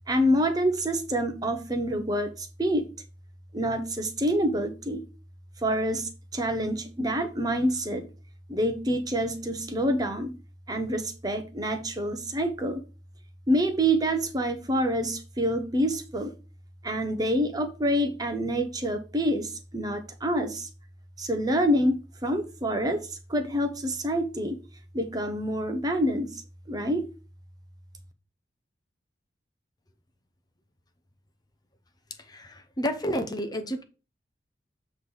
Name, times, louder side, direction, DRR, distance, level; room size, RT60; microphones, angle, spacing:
voice 1, 0.1-2.8 3.5-5.0 5.6-8.1 8.5-10.3 10.7-12.8 13.5-16.3 16.8-20.7 21.2-23.0 23.3-24.6 24.9-26.4 26.7-27.1, equal, 20° right, 0.8 m, -27 dB
voice 2, 32.3-33.8, equal, 20° left, 0.6 m, -30 dB
7.8 x 3.2 x 5.4 m
head